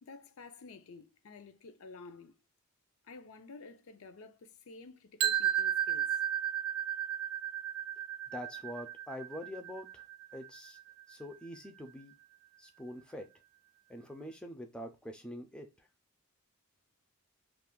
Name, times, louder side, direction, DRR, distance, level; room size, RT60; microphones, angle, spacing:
voice 1, 0.0-2.4 3.0-6.2, left 3 dB, 75° left, 0.5 m, -51 dB
sound 1, 5.2-11.1, right 10 dB, 70° right, 0.5 m, -34 dB
voice 2, 8.3-10.0 10.3-10.8 11.1-12.1 12.6-13.3 13.9-15.9, left 1 dB, 5° left, 0.4 m, -45 dB
2.4 x 2.4 x 3.6 m
head